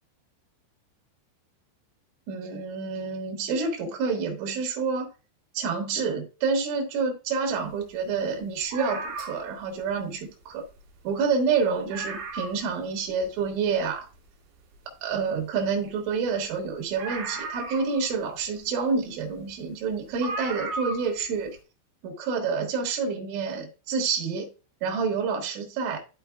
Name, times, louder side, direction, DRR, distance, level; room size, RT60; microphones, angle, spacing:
voice 1, 2.3-5.1 5.6-10.6 11.1-14.1 15.0-21.6 22.0-24.5 24.8-26.0, right 5 dB, 85° right, 4.0 m, -28 dB
sound 1, 8.7-9.6 10.7-10.8 11.1-11.2 11.6-11.7 11.9-12.7 13.2-13.3 17.0-18.2 19.4-19.5 20.2-21.2 21.5-21.6, right 3 dB, 70° right, 4.2 m, -35 dB
12.5 x 4.5 x 2.3 m
omnidirectional pair, 5.3 m